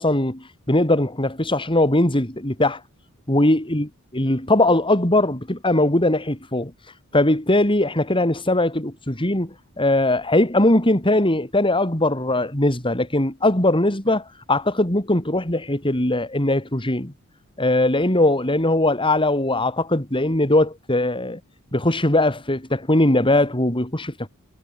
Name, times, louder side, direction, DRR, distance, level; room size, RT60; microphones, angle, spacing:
voice 1, 0.0-2.8 3.3-6.7 7.1-17.1 17.6-21.4 21.7-24.3, left 1 dB, 25° left, 4.3 m, -20 dB
head